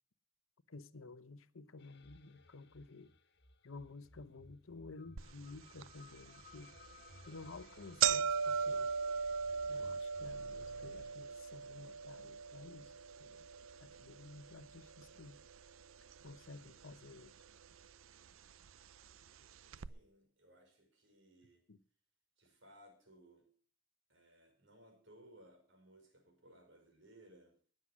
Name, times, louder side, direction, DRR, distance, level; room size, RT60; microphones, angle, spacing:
voice 1, 0.7-3.1 3.6-6.7 7.3-8.9 9.7-12.9 13.2-13.4 13.8-15.4 16.2-17.3 21.7-21.8, left 3 dB, 85° left, 0.9 m, -53 dB
sound 1, 1.8-11.1, left 2 dB, 55° left, 1.6 m, -60 dB
sound 2, 5.2-5.3 5.8-5.9 6.7-6.9 7.3-7.4 7.6-15.8 16.1-16.8 17.6-17.7 18.7-18.8 19.1-19.2 19.7-19.9, right 6 dB, 85° right, 0.6 m, -38 dB
voice 2, 19.8-21.6 22.4-23.5 24.1-27.6, right 1 dB, 60° right, 5.2 m, -62 dB
19.5 x 7.8 x 6.2 m
head